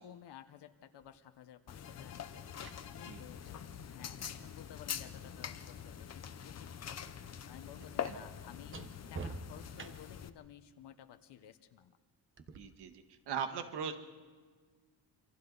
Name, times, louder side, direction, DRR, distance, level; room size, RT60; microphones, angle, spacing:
voice 1, 0.0-2.5 3.0-3.5 3.9-6.9 7.5-12.0 13.5-13.7, left 10 dB, 85° left, 8 dB, 1.3 m, -55 dB
sound 1, 1.0-1.2 2.3-6.3 6.6-10.3 12.4-12.6, right 3 dB, 30° right, 1.1 m, -51 dB
sound 2, 1.7-10.3, left 8 dB, 40° left, 0.9 m, -44 dB
sound 3, 1.8-5.4, left 9 dB, 60° left, 1.1 m, -56 dB
voice 2, 12.6-14.0, right 7 dB, 75° right, 7 dB, 1.7 m, -39 dB
28.0 x 26.5 x 4.1 m, 1.5 s
wide cardioid pair, 180°, 41 cm